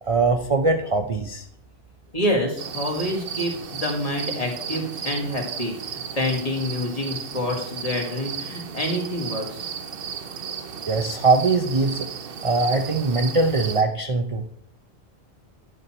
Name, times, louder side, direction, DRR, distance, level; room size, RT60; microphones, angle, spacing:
voice 1, 0.0-1.5 10.9-12.1 12.4-14.5, right 3 dB, 35° right, 5 dB, 0.6 m, -21 dB
voice 2, 2.1-9.7, left 1 dB, 35° left, 0 dB, 2.0 m, -27 dB
sound 1, 2.6-13.8, right 7 dB, 60° right, 0.9 m, -34 dB
11.0 x 6.2 x 4.3 m, 0.68 s
omnidirectional pair, 1.1 m